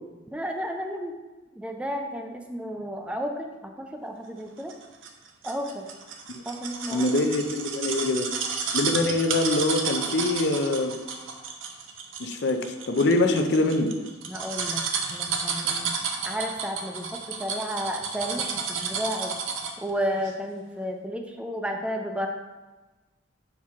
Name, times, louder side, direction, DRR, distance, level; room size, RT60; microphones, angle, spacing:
voice 1, 0.3-1.2 1.5-4.7 5.4-5.9 6.5-7.1 14.3-15.9 16.2-19.4 19.8-22.3, equal, 5° right, 3 dB, 0.3 m, -32 dB
sound 1, 4.7-19.9 20.2-20.3, right 5 dB, 90° right, 0.7 m, -31 dB
voice 2, 6.9-8.3 8.7-10.9 12.2-13.9, left 2 dB, 60° left, 6 dB, 0.5 m, -24 dB
5.8 x 4.6 x 3.6 m, 1.2 s
head